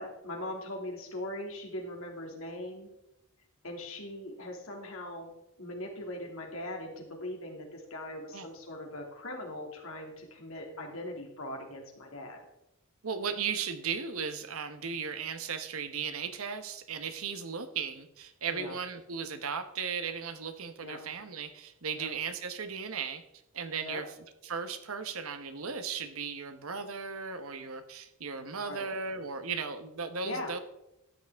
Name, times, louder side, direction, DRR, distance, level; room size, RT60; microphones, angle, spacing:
voice 1, 0.0-2.9 3.6-5.3 5.6-12.4 18.5-18.7 20.8-21.0 22.0-22.1 23.8-24.0 28.6-28.9 30.2-30.5, left 1 dB, 70° left, 1 dB, 2.4 m, -40 dB
voice 2, 13.0-23.2 23.5-24.1 24.4-30.6, right 6 dB, 75° right, 9 dB, 1.0 m, -36 dB
12.5 x 9.1 x 3.5 m, 0.87 s
head